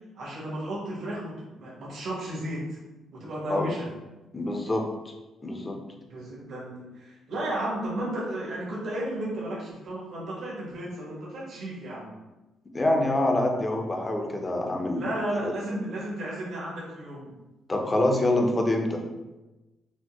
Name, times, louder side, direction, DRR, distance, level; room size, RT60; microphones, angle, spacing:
voice 1, 0.1-2.8 3.1-3.9 6.1-12.1 14.9-17.3, right 1 dB, 60° right, -5 dB, 1.1 m, -33 dB
voice 2, 4.3-5.1 5.4-5.8 12.7-15.1 15.4-15.5 17.7-19.0, left 1 dB, 20° left, 2 dB, 0.5 m, -25 dB
4.2 x 2.1 x 2.9 m, 1.1 s
cardioid pair, 115°, 0 cm